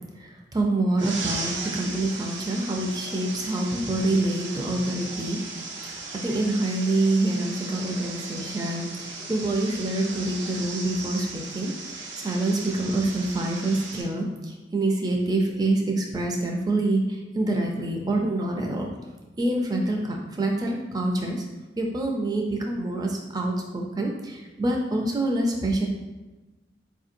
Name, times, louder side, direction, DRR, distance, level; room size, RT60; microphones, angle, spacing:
voice 1, 0.2-5.4 6.2-18.9 19.4-21.4 21.8-25.9, right 2 dB, 20° right, 1 dB, 0.4 m, -26 dB
sound 1, 1.0-14.0, right 3 dB, 75° right, 0.5 m, -36 dB
4.3 x 2.7 x 2.5 m, 1.1 s
head